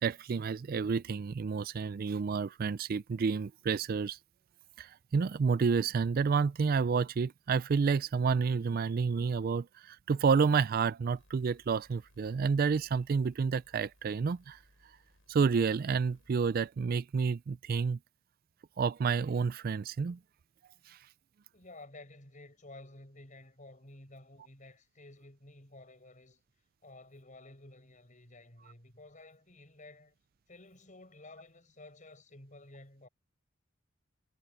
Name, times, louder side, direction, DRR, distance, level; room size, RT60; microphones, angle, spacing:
voice 1, 0.0-4.2 4.8-14.6 15.3-18.0 18.8-20.2 20.9-21.0, right 5 dB, 45° right, 0.3 m, -30 dB
sound 1, 11.1-16.7, left 1 dB, 85° left, 6.5 m, -66 dB
voice 2, 21.5-26.4 26.8-30.1 30.5-33.1, left 2 dB, 40° left, 7.0 m, -53 dB
head